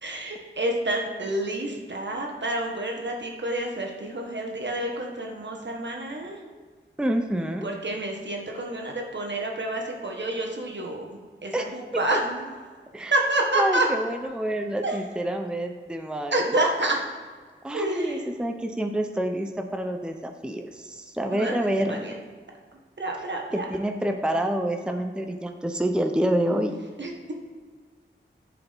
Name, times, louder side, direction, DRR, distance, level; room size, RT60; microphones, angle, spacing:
voice 1, 0.0-6.4 7.6-12.5 13.1-13.9 14.8-15.0 16.3-17.0 17.7-18.3 21.3-22.2 23.0-23.6 27.0-27.3, right 1 dB, 65° right, 0 dB, 1.3 m, -28 dB
voice 2, 7.0-7.7 11.5-12.0 12.9-13.1 13.5-16.4 17.6-22.2 23.5-26.8, right 1 dB, 5° right, 5 dB, 0.6 m, -28 dB
10.0 x 4.8 x 3.5 m, 1.5 s
wide cardioid pair, 50°, 20 cm